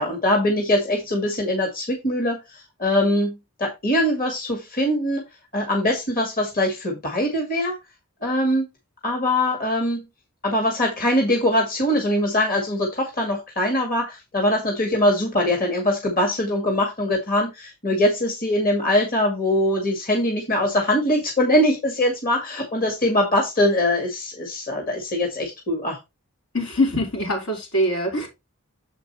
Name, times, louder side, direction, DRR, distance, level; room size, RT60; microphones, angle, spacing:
voice 1, 0.0-5.2 5.5-7.8 8.2-8.7 9.0-10.0 10.4-26.0, left 1 dB, 40° left, 2 dB, 1.9 m, -22 dB
voice 2, 26.5-28.3, left 1 dB, 75° left, 1 dB, 4.4 m, -23 dB
7.5 x 5.1 x 4.2 m, 0.23 s
head